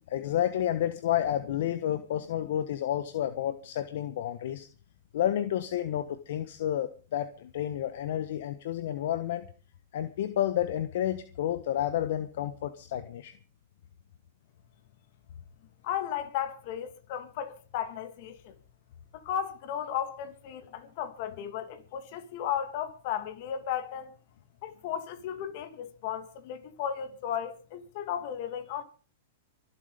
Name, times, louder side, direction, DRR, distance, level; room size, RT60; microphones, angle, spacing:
voice 1, 0.1-4.7 5.1-9.5 9.9-13.3, left 11 dB, 65° left, 1.3 m, -30 dB
voice 2, 15.8-18.5 19.2-24.1 24.6-28.8, left 9 dB, 45° left, 2.7 m, -35 dB
24.5 x 8.2 x 5.2 m
hypercardioid pair, 150°, 0 cm